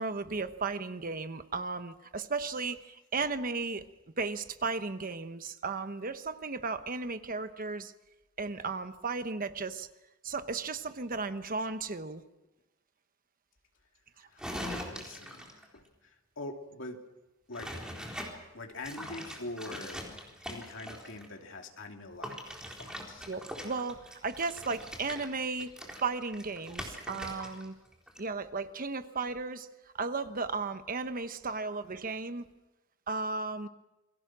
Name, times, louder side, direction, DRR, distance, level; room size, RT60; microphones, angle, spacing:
voice 1, 0.0-3.8 4.2-7.9 8.4-9.9 10.2-12.2 14.7-14.9 23.3-25.7 26.0-27.7 28.2-29.7 29.9-32.5 33.1-33.7, right 4 dB, 40° right, 10 dB, 1.1 m, -35 dB
voice 2, 14.2-17.0 17.5-17.7 18.5-20.0 20.5-23.3, left 2 dB, 65° left, 3 dB, 2.9 m, -44 dB
sound 1, 14.4-15.6 17.5-18.3 18.8-21.3 22.2-27.7 27.9-28.2, equal, 5° right, 4.0 m, -42 dB
28.5 x 22.5 x 6.2 m, 1.0 s
head